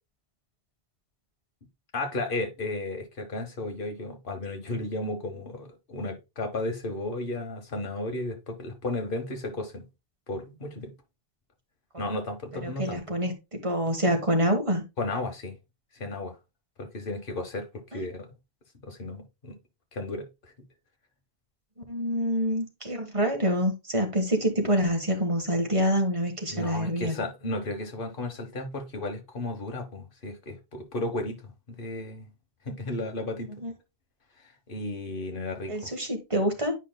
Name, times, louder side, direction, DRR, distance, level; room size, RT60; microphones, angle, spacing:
voice 1, 1.9-9.8 10.3-10.9 12.0-13.0 15.0-15.6 16.0-16.3 16.8-17.7 17.9-18.3 18.8-19.5 19.9-20.3 26.5-31.4 31.7-32.3 32.6-33.5 34.7-35.9, left 2 dB, 55° left, 1.3 m, -34 dB
voice 2, 12.6-14.8 17.9-18.0 21.9-27.2 33.6-33.7 35.7-36.7, equal, 30° right, 1.5 m, -26 dB
9.9 x 5.1 x 2.2 m
omnidirectional pair, 1.1 m